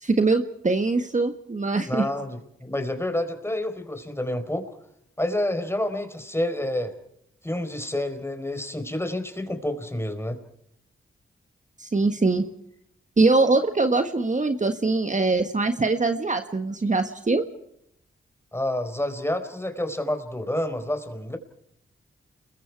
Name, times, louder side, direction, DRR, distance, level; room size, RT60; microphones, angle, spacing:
voice 1, 0.0-2.0 11.8-12.4 13.2-17.4, right 3 dB, 35° right, 7 dB, 1.6 m, -22 dB
voice 2, 1.9-4.7 5.2-6.9 7.4-10.4 18.5-21.4, left 1 dB, 10° left, 8 dB, 4.5 m, -28 dB
30.0 x 22.0 x 4.8 m, 0.76 s
cardioid pair, 55°, 21 cm